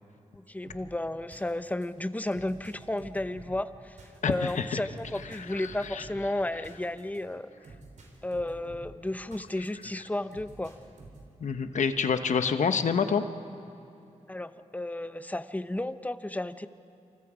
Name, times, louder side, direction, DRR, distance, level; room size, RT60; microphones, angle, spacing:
voice 1, 0.3-4.0 4.2-7.5 8.2-10.8 14.3-16.7, left 1 dB, 10° left, 11 dB, 0.8 m, -33 dB
sound 1, 0.6-9.9 10.3-11.4, right 2 dB, 80° right, 4.2 m, -51 dB
voice 2, 4.2-4.8 5.3-6.0 11.4-13.2, left 6 dB, 80° left, 9 dB, 1.1 m, -28 dB
28.5 x 27.5 x 5.1 m, 2.9 s
wide cardioid pair, 85°, 12 cm